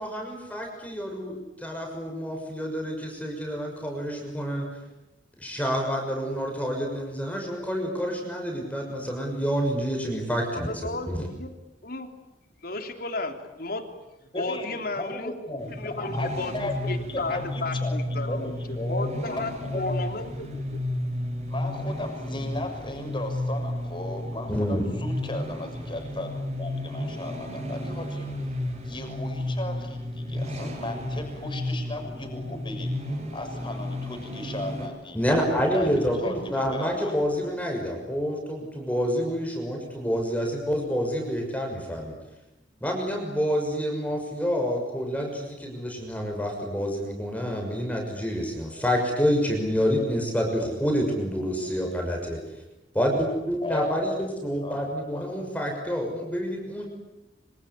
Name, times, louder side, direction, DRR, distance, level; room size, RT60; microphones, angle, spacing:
voice 1, 0.0-4.7 5.4-10.7 11.1-11.3 24.5-24.8 35.1-42.2 42.8-52.4 52.9-54.1 54.4-56.9, equal, 10° left, 1 dB, 6.3 m, -28 dB
voice 2, 10.7-11.5 11.8-12.1 12.6-13.8 14.4-15.3 15.8-16.5 16.9-18.6 18.9-20.8, left 2 dB, 55° left, 6 dB, 3.5 m, -33 dB
voice 3, 14.3-16.7 17.1-20.1 21.5-28.3 28.8-35.2 35.7-37.1 37.5-37.6 53.6-55.5, left 2 dB, 25° left, 4 dB, 6.6 m, -36 dB
sound 1, 15.6-34.9, left 1 dB, 35° right, 7.7 m, -32 dB
26.5 x 26.5 x 8.5 m, 0.95 s
head